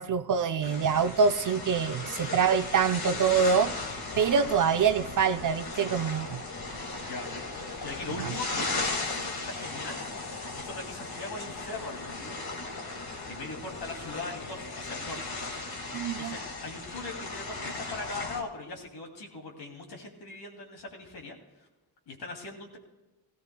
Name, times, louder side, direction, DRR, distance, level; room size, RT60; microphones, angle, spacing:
voice 1, 0.0-3.8 4.2-6.4 8.2-8.3 15.9-16.3, right 6 dB, 55° right, 0.5 m, -25 dB
sound 1, 0.6-18.4, left 3 dB, 70° left, 2.0 m, -37 dB
voice 2, 7.8-10.1 10.6-12.4 13.3-15.4 16.2-21.4 22.1-22.8, left 3 dB, 90° left, 2.7 m, -40 dB
17.5 x 16.5 x 2.2 m
wide cardioid pair, 105°, 38 cm